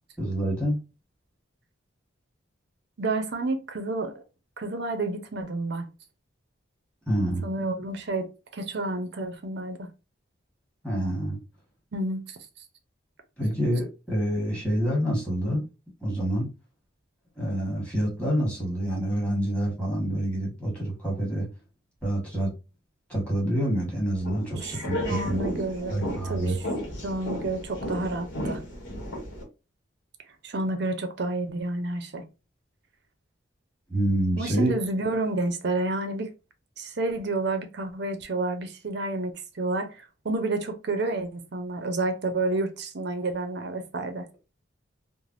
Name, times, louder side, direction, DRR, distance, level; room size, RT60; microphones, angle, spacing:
voice 1, 0.2-0.8 7.1-7.4 10.8-11.4 13.4-15.6 16.0-16.5 17.4-21.5 22.0-22.5 23.1-25.4 25.9-26.6 33.9-34.7, equal, 5° left, 1.3 m, -27 dB
voice 2, 3.0-4.2 4.6-5.9 7.4-9.9 11.9-12.4 24.6-24.8 25.0-26.6 27.0-28.6 30.4-32.2 34.4-36.3 36.8-44.3, right 2 dB, 60° right, 0.5 m, -30 dB
sound 1, 24.2-29.4, equal, 70° left, 1.1 m, -34 dB
3.3 x 2.1 x 2.5 m
head